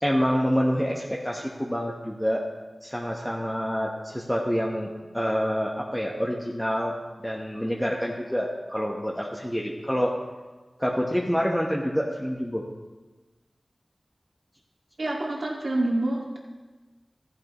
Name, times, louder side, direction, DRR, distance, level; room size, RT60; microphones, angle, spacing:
voice 1, 0.0-2.4 2.8-4.9 5.1-6.9 7.2-10.1 10.8-12.6, equal, 5° left, -2 dB, 1.0 m, -27 dB
voice 2, 15.0-16.4, right 1 dB, 70° right, -2 dB, 1.9 m, -27 dB
14.0 x 9.5 x 3.0 m, 1.2 s
wide cardioid pair, 55°, 0 cm